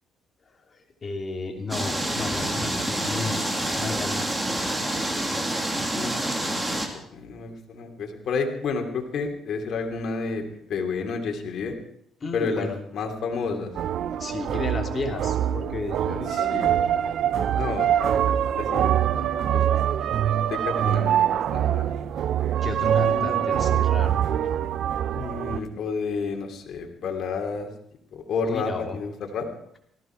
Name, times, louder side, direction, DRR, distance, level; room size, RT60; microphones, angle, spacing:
voice 1, 0.7-3.4 3.7-4.3 12.2-12.8 14.2-16.7 19.3-19.4 22.6-24.2 28.4-29.0, left 3 dB, 35° left, 3 dB, 3.0 m, -33 dB
sound 1, 1.7-6.9, right 1 dB, 15° right, 2.6 m, -27 dB
voice 2, 5.9-10.4 10.7-11.8 12.3-13.7 16.3-16.8 17.6-19.8 20.5-21.9 23.1-23.5 25.1-27.7 28.1-29.5, left 4 dB, 60° left, 3 dB, 3.0 m, -31 dB
sound 2, 13.8-25.6, right 10 dB, 65° right, 0.5 m, -24 dB
18.5 x 15.0 x 4.6 m, 0.71 s
cardioid pair, 95°, 0 cm